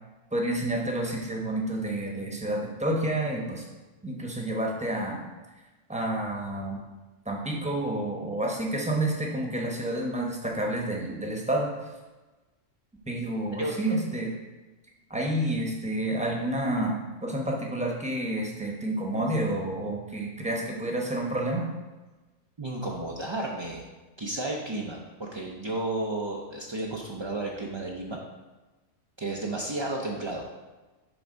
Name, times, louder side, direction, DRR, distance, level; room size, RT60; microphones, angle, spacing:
voice 1, 0.3-3.6 4.0-5.2 5.9-6.8 7.2-11.9 13.1-14.3 15.1-21.7, right 1 dB, 5° right, -1 dB, 0.8 m, -29 dB
voice 2, 13.6-14.0 22.6-23.8 24.2-28.2 29.2-30.5, right 2 dB, 50° right, -2 dB, 0.3 m, -32 dB
7.0 x 3.5 x 5.2 m, 1.2 s
omnidirectional pair, 1.4 m